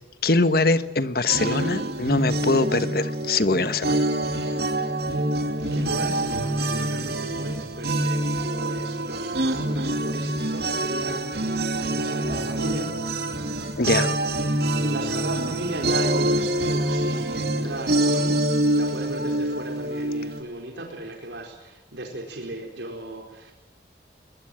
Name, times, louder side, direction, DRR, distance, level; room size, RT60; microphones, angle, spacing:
voice 1, 0.2-4.0 13.8-14.2, left 3 dB, 55° left, 12 dB, 1.3 m, -22 dB
sound 1, 1.3-20.4, right 1 dB, 60° right, 2.6 m, -26 dB
voice 2, 5.7-12.9 14.8-18.4 18.7-23.5, right 1 dB, 85° right, 1 dB, 4.4 m, -36 dB
23.0 x 20.5 x 7.7 m, 1.1 s
head